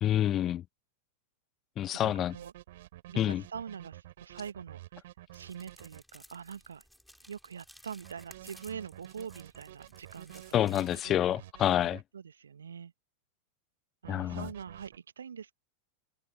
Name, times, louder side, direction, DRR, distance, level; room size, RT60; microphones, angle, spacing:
voice 1, 0.0-0.6 1.8-2.4 3.2-3.4 10.5-12.0 14.1-14.5, left 11 dB, 30° left, 0.6 m, -28 dB
voice 2, 1.9-2.5 3.1-4.8 5.3-6.8 7.3-10.4 10.7-10.8 12.1-12.9 14.0-15.5, right 7 dB, 70° right, 1.2 m, -44 dB
sound 1, 2.0-6.0 8.0-12.0 14.0-15.0, right 16 dB, 55° right, 3.3 m, -50 dB
sound 2, 5.3-11.0, equal, ahead, 4.9 m, -57 dB
open air
figure-of-eight pair, 90°, 0 cm